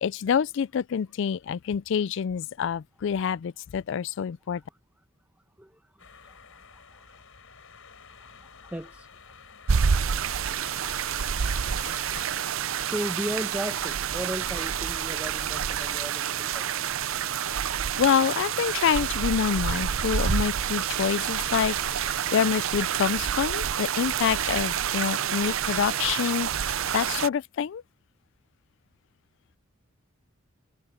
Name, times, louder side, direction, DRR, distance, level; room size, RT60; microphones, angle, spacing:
voice 1, 0.0-4.6 18.0-27.8, left 7 dB, 60° left, 0.3 m, -27 dB
voice 2, 5.6-7.2 8.2-9.1 12.4-16.7, equal, 10° right, 1.4 m, -37 dB
sound 1, 6.0-12.3, left 5 dB, 80° left, 4.5 m, -49 dB
sound 2, 9.7-27.3, right 8 dB, 75° right, 0.6 m, -28 dB
head